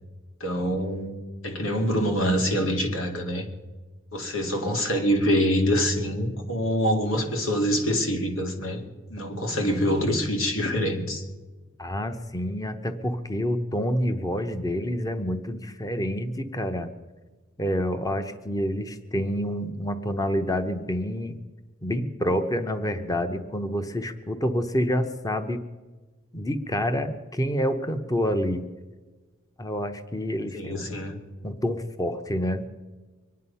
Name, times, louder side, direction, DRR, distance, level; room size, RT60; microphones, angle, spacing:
voice 1, 0.4-1.2 1.4-3.4 4.1-8.8 9.1-11.2 30.5-31.2, equal, 85° left, 3 dB, 2.3 m, -25 dB
voice 2, 11.8-16.9 17.6-21.3 21.8-25.6 26.3-28.7 29.6-30.8 31.4-32.7, equal, 20° left, 8 dB, 0.9 m, -28 dB
24.0 x 9.6 x 5.6 m, 1.3 s
head